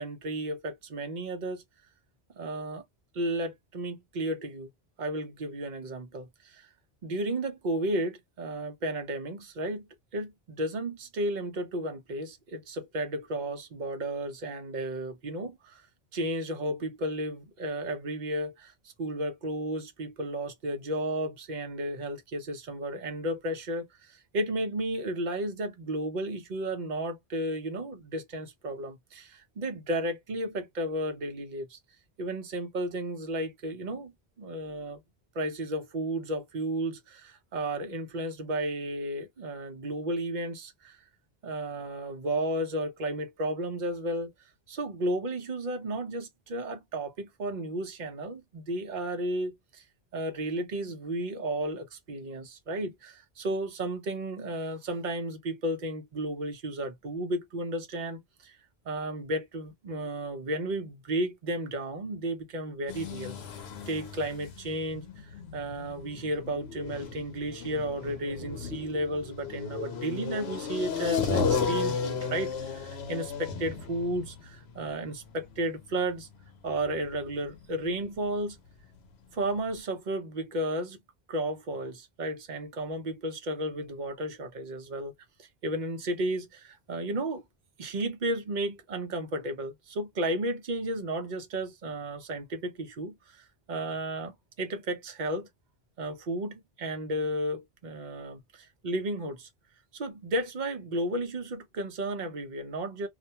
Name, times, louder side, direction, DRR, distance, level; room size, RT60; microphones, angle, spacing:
voice 1, 0.0-1.6 2.4-2.8 3.1-4.7 5.0-6.7 7.0-15.8 16.1-31.8 32.2-35.0 35.3-41.0 41.4-44.3 44.7-49.8 50.1-58.6 58.9-65.1 65.5-76.3 76.6-78.6 79.3-81.0 81.3-85.1 85.4-87.4 87.8-95.5 96.0-99.5 99.9-103.1, right 1 dB, 50° right, 0.7 m, -33 dB
sound 1, 62.9-78.5 78.8-78.9 79.4-79.5 79.7-79.8, left 5 dB, 80° left, 0.9 m, -35 dB
2.4 x 2.1 x 2.8 m
omnidirectional pair, 1.0 m